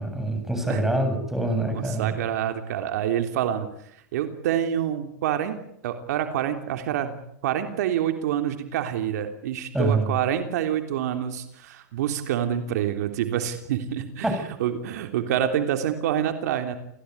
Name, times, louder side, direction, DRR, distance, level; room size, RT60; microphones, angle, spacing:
voice 1, 0.0-2.1 9.7-10.1 14.2-14.4, right 2 dB, 5° right, 6 dB, 7.7 m, -25 dB
voice 2, 1.7-3.7 4.1-5.6 5.8-7.2 7.4-14.3 14.6-16.8, right 10 dB, 65° right, 7 dB, 3.4 m, -27 dB
28.5 x 16.5 x 9.7 m, 0.74 s
supercardioid pair, 135°, 9 cm